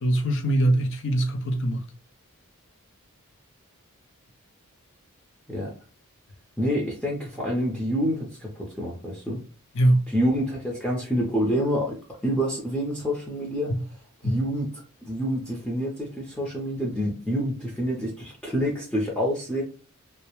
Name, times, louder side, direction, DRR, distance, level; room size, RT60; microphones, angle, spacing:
voice 1, 0.0-1.8 9.7-10.0 13.7-13.8 14.2-14.4, right 1 dB, 55° left, 0.5 m, -22 dB
voice 2, 6.6-9.4 10.1-11.9 12.2-13.7 14.2-14.7 15.0-19.6, equal, 5° left, 0.5 m, -27 dB
2.2 x 2.0 x 2.9 m
head